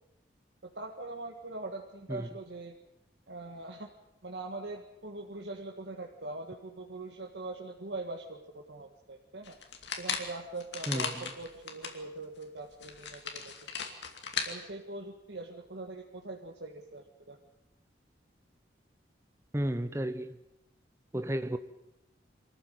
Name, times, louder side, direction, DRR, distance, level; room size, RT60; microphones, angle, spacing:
voice 1, 0.8-2.8 3.3-3.9 4.2-9.5 10.0-13.5 14.5-17.4, right 2 dB, 80° right, 1.8 m, -42 dB
sound 1, 9.4-12.0 12.4-12.5 12.8-14.5, left 6 dB, 80° left, 2.6 m, -37 dB
voice 2, 10.9-11.3 19.5-20.4 21.1-21.6, right 1 dB, 15° right, 0.7 m, -33 dB
24.0 x 14.0 x 9.3 m
head